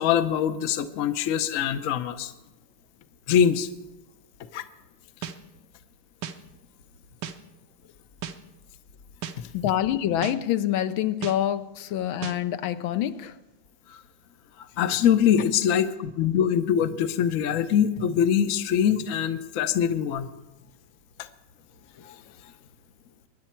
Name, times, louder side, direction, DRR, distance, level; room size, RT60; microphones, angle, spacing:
voice 1, 0.0-2.3 3.3-3.7 4.5-4.6 9.4-9.5 13.9-14.0 14.6-20.3 22.0-22.2, left 9 dB, 60° left, 0.9 m, -23 dB
sound 1, 5.2-5.4 6.2-6.4 7.2-7.4 8.2-8.4 9.2-9.4 10.2-10.4 11.2-11.4 12.2-12.4, right 8 dB, 65° right, 1.3 m, -34 dB
voice 2, 9.5-13.4, left 11 dB, 75° left, 1.4 m, -26 dB
23.5 x 10.0 x 4.4 m
omnidirectional pair, 2.3 m